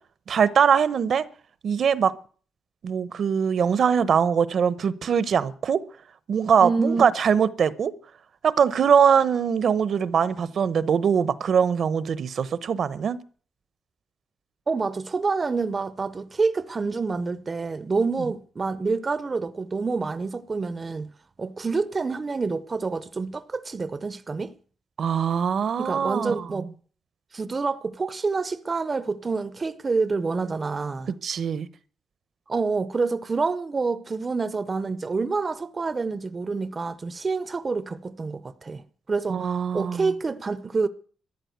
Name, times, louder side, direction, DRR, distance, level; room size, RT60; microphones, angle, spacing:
voice 1, 0.3-1.2 1.6-2.1 2.8-5.8 6.3-7.9 8.4-13.2 25.0-26.5 31.2-31.7 39.3-40.0, right 7 dB, 60° right, 0.9 m, -22 dB
voice 2, 6.6-7.0 14.7-21.1 21.4-24.5 25.8-26.7 27.3-31.1 32.5-38.8 39.1-40.9, right 4 dB, 30° right, 0.7 m, -27 dB
14.0 x 9.8 x 8.0 m
cardioid pair, 120°, 0 cm